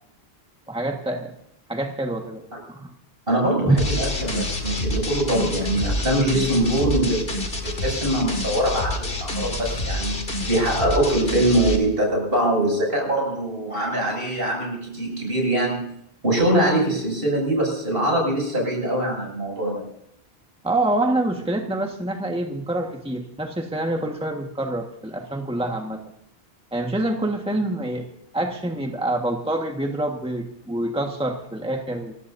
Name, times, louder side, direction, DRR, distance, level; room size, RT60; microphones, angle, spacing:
voice 1, 0.7-1.3 1.7-2.4 2.7-2.9 3.6-3.7 20.6-26.0 26.7-32.1, right 1 dB, 5° right, 2 dB, 1.6 m, -26 dB
voice 2, 3.3-16.0 16.2-19.9, right 1 dB, 65° right, 0 dB, 7.6 m, -23 dB
sound 1, 3.8-11.8, left 1 dB, 60° left, 2.5 m, -27 dB
29.0 x 16.0 x 2.7 m, 0.74 s
omnidirectional pair, 1.0 m